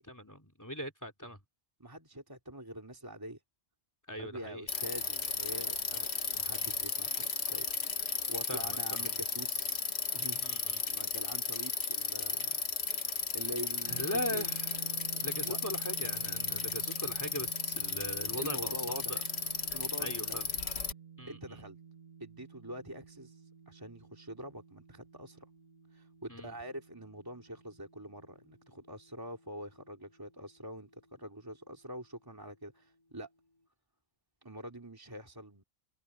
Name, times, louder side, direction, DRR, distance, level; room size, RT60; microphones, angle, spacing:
voice 1, 0.0-1.4 4.1-4.7 8.5-9.1 10.4-10.8 13.9-19.2 20.0-20.5 21.2-21.6 26.3-26.6, equal, 15° left, 3.0 m, -40 dB
voice 2, 1.8-3.4 4.2-6.1 6.3-7.7 8.3-9.8 10.1-10.5 10.9-13.0 13.3-14.4 15.4-15.6 18.4-19.3 19.7-20.4 21.3-21.8 22.2-25.5 25.9-33.3 34.4-35.6, equal, 20° right, 2.8 m, -45 dB
Bicycle, 4.7-20.9, left 4 dB, 90° left, 1.7 m, -35 dB
sound 1, 13.9-29.8, right 8 dB, 40° right, 2.8 m, -51 dB
omnidirectional pair, 1.0 m